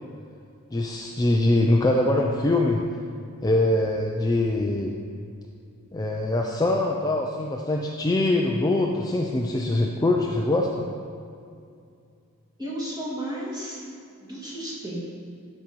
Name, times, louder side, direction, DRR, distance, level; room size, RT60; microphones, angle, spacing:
voice 1, 0.7-2.8 3.4-4.9 5.9-10.9, left 2 dB, 15° left, 0 dB, 0.4 m, -23 dB
voice 2, 12.6-13.8 14.2-15.0, right 1 dB, 20° right, -7 dB, 2.3 m, -33 dB
12.5 x 5.4 x 4.5 m, 2.4 s
head